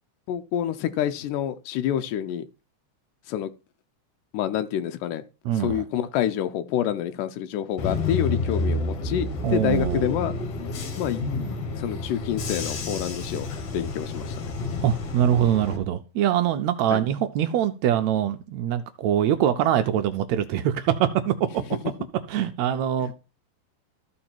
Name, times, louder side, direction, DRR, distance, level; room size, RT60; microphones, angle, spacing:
voice 1, 0.3-2.4 3.3-3.5 4.3-5.2 5.6-10.3 11.0-11.2 11.8-13.5 13.7-14.5 16.9-17.0 23.0-23.1, left 10 dB, 85° left, 2.2 m, -27 dB
voice 2, 5.4-5.8 9.4-10.1 14.8-21.6 22.3-23.1, right 10 dB, 80° right, 1.7 m, -23 dB
Bus / Engine, 7.8-15.8, left 3 dB, 55° left, 2.1 m, -30 dB
13.5 x 4.7 x 4.4 m
omnidirectional pair, 3.7 m